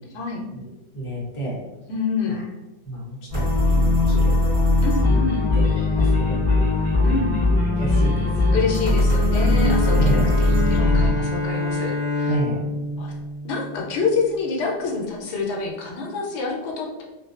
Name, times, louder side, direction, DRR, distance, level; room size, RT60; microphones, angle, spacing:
voice 1, 0.9-1.6 2.3-2.4 2.8-4.5 5.5-6.7 7.8-8.6 9.9-10.3 12.3-12.7, right 1 dB, 35° left, -4 dB, 0.7 m, -30 dB
voice 2, 1.9-2.4 4.8-5.4 7.0-7.3 8.5-12.4 13.0-13.1 13.4-17.0, left 4 dB, 85° left, -2 dB, 0.8 m, -27 dB
sound 1, 3.3-11.1, left 2 dB, 35° right, 1.2 m, -19 dB
Bowed string instrument, 9.3-14.2, left 2 dB, 60° right, 0.7 m, -27 dB
2.5 x 2.2 x 2.3 m, 1.0 s
omnidirectional pair, 1.1 m